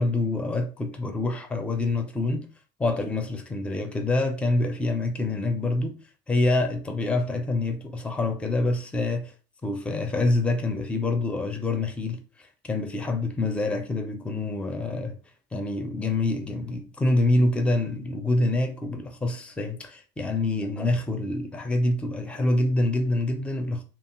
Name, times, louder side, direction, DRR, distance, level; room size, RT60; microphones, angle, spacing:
voice 1, 0.0-2.5 2.8-6.0 6.3-9.3 9.6-12.2 12.7-15.1 15.5-23.8, left 2 dB, 5° left, 0.4 m, -26 dB
2.6 x 2.3 x 3.0 m
supercardioid pair, 105°, 18 cm